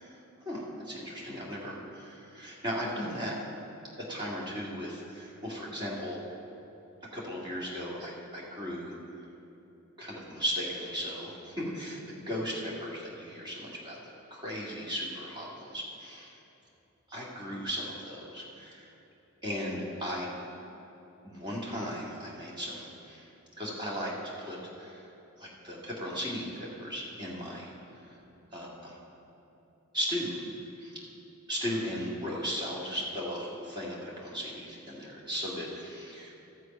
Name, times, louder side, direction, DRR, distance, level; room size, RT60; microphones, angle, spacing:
voice 1, 0.0-3.4 4.0-6.2 7.1-8.9 10.0-16.4 17.1-18.9 19.4-20.4 21.2-23.3 23.6-25.0 25.4-27.7 28.0-28.1 28.5-29.0 29.9-30.4 30.8-31.0 31.5-36.3, equal, 20° right, -5 dB, 1.9 m, -36 dB
13.5 x 6.5 x 5.1 m, 3.0 s
head